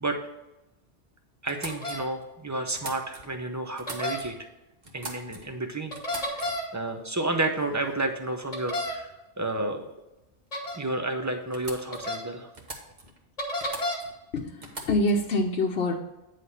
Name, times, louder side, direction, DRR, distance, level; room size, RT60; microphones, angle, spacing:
voice 1, 1.4-4.4 4.9-6.0 6.3-6.4 6.7-9.9 10.7-12.5, right 2 dB, 20° right, 5 dB, 0.6 m, -31 dB
sound 1, 1.5-3.4 3.7-4.5 4.8-5.6 5.9-6.8 7.7-7.9 8.3-8.7 10.6-10.7 11.0-11.1 11.5-12.1 12.5-13.2 13.6-14.2 14.6-15.3, right 2 dB, 40° right, 1.2 m, -42 dB
sound 2, 1.7-2.0 3.9-4.2 5.9-6.6 8.5-8.9 10.5-10.8 11.9-12.2 13.4-14.0, left 1 dB, 35° left, 1.3 m, -30 dB
voice 2, 14.3-15.9, left 1 dB, 70° left, 0 dB, 1.0 m, -25 dB
9.4 x 3.3 x 5.6 m, 0.96 s
omnidirectional pair, 1.1 m